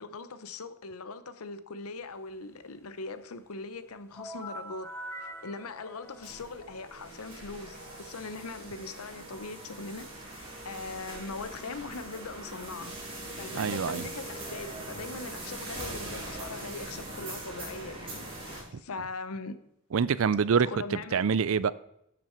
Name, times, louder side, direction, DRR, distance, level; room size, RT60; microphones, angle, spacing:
voice 1, 0.0-4.9 5.2-13.0 13.4-19.5 20.6-21.4, left 3 dB, 80° left, 0.8 m, -41 dB
sound 1, 4.1-7.7, equal, 10° left, 1.2 m, -44 dB
sound 2, 6.1-18.6, right 2 dB, 25° right, 4.3 m, -41 dB
voice 2, 13.5-14.1 18.7-18.8 19.9-20.7 21.1-21.7, right 6 dB, 70° right, 0.4 m, -25 dB
11.5 x 7.7 x 4.5 m
head